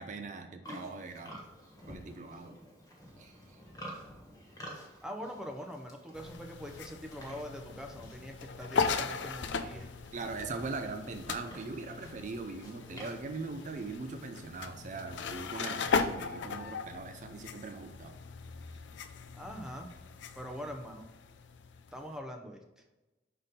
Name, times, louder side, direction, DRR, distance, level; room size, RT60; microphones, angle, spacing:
voice 1, 0.0-1.4 1.9-2.6 3.2-3.6 10.1-18.1, right 3 dB, 45° right, 6 dB, 0.4 m, -41 dB
Livestock farm animals working animals, 0.6-14.3, equal, 20° left, 1.5 m, -51 dB
voice 2, 5.0-9.9 19.3-19.9 20.4-21.1 21.9-22.8, equal, 5° right, 3 dB, 0.6 m, -43 dB
sound 1, 6.1-22.2, left 5 dB, 80° left, 0.5 m, -38 dB
5.5 x 4.1 x 5.1 m, 1.1 s
head